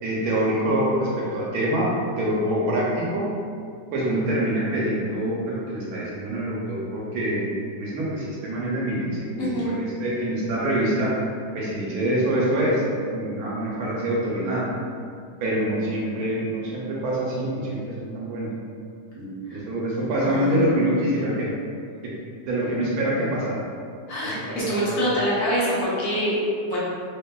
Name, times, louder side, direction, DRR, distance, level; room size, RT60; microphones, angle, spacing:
voice 1, 0.0-1.9 2.2-3.3 3.9-7.5 7.8-11.1 11.5-14.6 15.4-18.5 19.1-21.5 22.5-23.6 24.2-25.1, right 1 dB, 75° right, -6 dB, 1.0 m, -25 dB
voice 2, 9.4-9.7 19.5-19.6 20.2-20.8 24.1-26.3 26.6-26.8, equal, 60° left, -9 dB, 1.1 m, -25 dB
2.7 x 2.6 x 2.2 m, 2.3 s
omnidirectional pair, 1.7 m